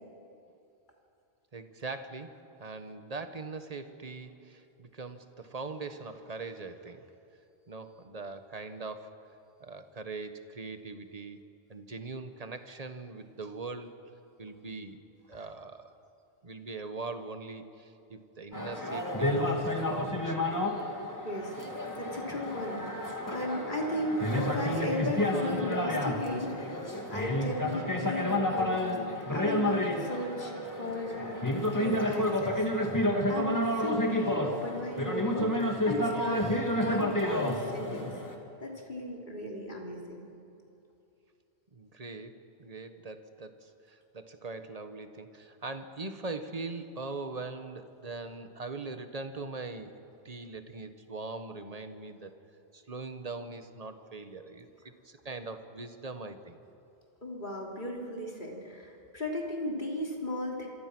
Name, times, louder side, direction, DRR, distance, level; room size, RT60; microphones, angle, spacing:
voice 1, 1.5-2.3 2.6-7.0 7.7-9.1 9.6-11.4 11.7-13.9 14.4-15.0 15.3-15.9 16.4-20.4 41.7-49.9 50.2-52.3 52.7-54.7 55.0-56.6, right 3 dB, 35° right, 8 dB, 1.4 m, -41 dB
sound 1, 18.5-38.3, left 1 dB, 15° left, 2.3 m, -30 dB
voice 2, 22.0-26.8 27.1-30.5 30.8-32.6 33.3-38.1 38.6-40.3 57.2-60.7, left 1 dB, 50° left, 0 dB, 3.5 m, -36 dB
26.5 x 24.5 x 6.2 m, 2.7 s
omnidirectional pair, 1.1 m